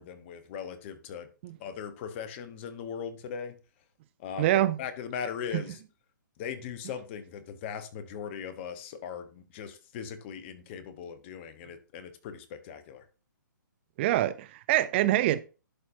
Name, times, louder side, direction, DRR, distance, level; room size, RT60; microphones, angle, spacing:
voice 1, 0.0-1.3 1.6-3.6 4.2-4.5 4.8-5.8 6.4-13.0, left 7 dB, 35° left, 1.0 m, -39 dB
voice 2, 4.4-4.8 5.5-5.6 14.0-15.4, right 14 dB, 35° right, 0.5 m, -25 dB
11.0 x 4.2 x 2.6 m
hypercardioid pair, 135°, 11 cm